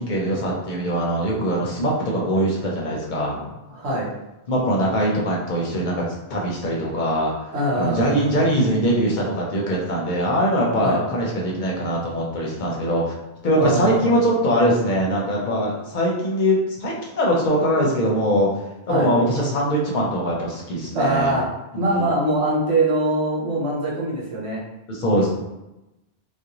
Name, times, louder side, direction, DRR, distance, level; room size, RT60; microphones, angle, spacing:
voice 1, 0.0-3.5 4.5-5.9 6.3-7.3 7.7-13.1 13.4-18.5 18.9-21.3 21.7-22.0 24.9-25.3, equal, 55° left, -3 dB, 0.6 m, -22 dB
voice 2, 3.7-4.1 7.5-8.3 10.8-11.0 13.5-14.2 18.9-19.1 20.9-21.5 21.7-24.6, right 1 dB, 85° right, -5 dB, 1.1 m, -23 dB
2.4 x 2.1 x 2.8 m, 0.96 s
omnidirectional pair, 1.1 m